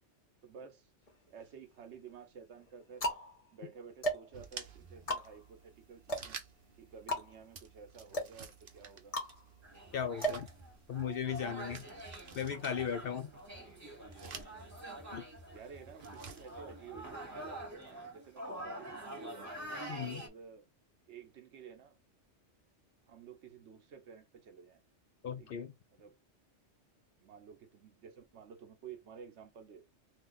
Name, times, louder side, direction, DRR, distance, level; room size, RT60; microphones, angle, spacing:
voice 1, 0.4-0.9 1.3-3.1 3.5-6.4 6.8-9.1 14.8-15.1 15.5-19.5 20.0-20.6 21.1-22.0 23.1-24.8 25.4-26.2 27.2-29.8, right 6 dB, 70° right, 1.0 m, -53 dB
sound 1, 1.1-1.8 2.5-11.2, right 1 dB, 35° left, 0.9 m, -39 dB
sound 2, 4.3-17.7, right 6 dB, 55° right, 0.8 m, -53 dB
sound 3, 9.6-20.3, right 1 dB, 15° right, 1.0 m, -46 dB
voice 2, 9.9-10.5 10.9-11.9 12.3-13.3 15.1-15.3 19.9-20.2 25.2-25.7, left 8 dB, 60° left, 0.6 m, -37 dB
2.8 x 2.5 x 3.8 m
omnidirectional pair, 1.2 m